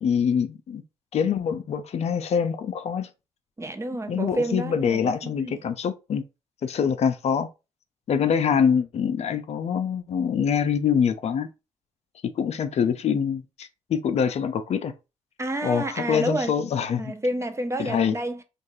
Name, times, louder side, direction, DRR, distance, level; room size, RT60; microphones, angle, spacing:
voice 1, 0.0-0.8 1.1-3.1 4.1-6.2 6.6-7.5 8.1-11.5 12.4-14.9 15.6-17.1 17.8-18.2, left 7 dB, 55° left, 0.4 m, -25 dB
voice 2, 3.6-5.6 15.4-16.5 17.0-18.4, right 1 dB, 20° right, 0.5 m, -29 dB
2.6 x 2.3 x 3.0 m
supercardioid pair, 55°, 13 cm